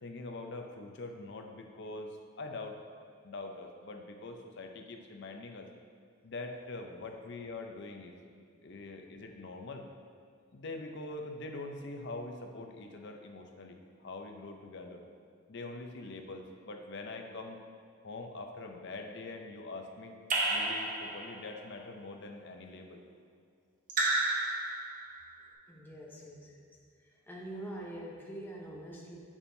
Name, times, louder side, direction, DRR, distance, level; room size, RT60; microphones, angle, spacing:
voice 1, 0.0-2.8 3.2-5.7 6.2-8.1 8.6-9.9 10.5-15.0 15.5-17.6 18.0-20.1 20.5-23.0, left 2 dB, 55° left, 4 dB, 0.6 m, -44 dB
Raindrop / Drip, 20.3-21.5 23.9-25.3, right 2 dB, 40° right, 0.9 m, -31 dB
voice 2, 25.7-26.7 27.0-29.2, right 1 dB, 10° left, -3 dB, 0.8 m, -44 dB
7.1 x 7.0 x 2.7 m, 2.2 s
head